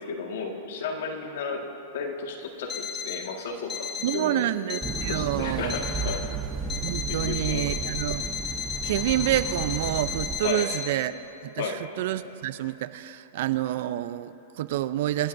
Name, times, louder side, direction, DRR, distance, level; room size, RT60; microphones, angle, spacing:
voice 1, 0.0-1.6 1.9-4.5 5.1-6.3 7.3-7.7 10.4-10.7 11.6-11.8, left 5 dB, 70° left, 2 dB, 1.8 m, -33 dB
Alarm, 2.7-3.3 3.7-4.3 4.7-5.3 5.7-6.3 6.7-10.8, left 7 dB, 25° left, 1.3 m, -33 dB
voice 2, 4.0-5.7 6.8-8.3 8.8-11.1 11.4-15.3, right 13 dB, 60° right, 14 dB, 0.5 m, -28 dB
sound 1, 4.8-10.4, right 4 dB, 15° right, 0.7 m, -34 dB
26.5 x 12.5 x 2.7 m, 2.9 s
hypercardioid pair, 140°, 0 cm